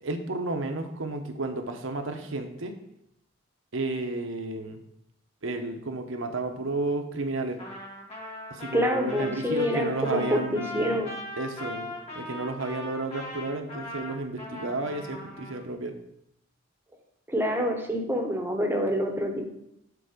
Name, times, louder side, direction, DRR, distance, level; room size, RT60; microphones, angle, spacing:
voice 1, 0.0-2.8 3.7-4.8 5.4-7.6 8.5-11.1 11.4-16.0, right 2 dB, 70° right, 6 dB, 0.9 m, -32 dB
Trumpet, 7.6-15.6, left 1 dB, 30° left, 1.9 m, -39 dB
voice 2, 8.7-11.1 17.3-19.5, equal, 10° right, 2 dB, 0.8 m, -27 dB
6.9 x 4.2 x 5.0 m, 0.78 s
head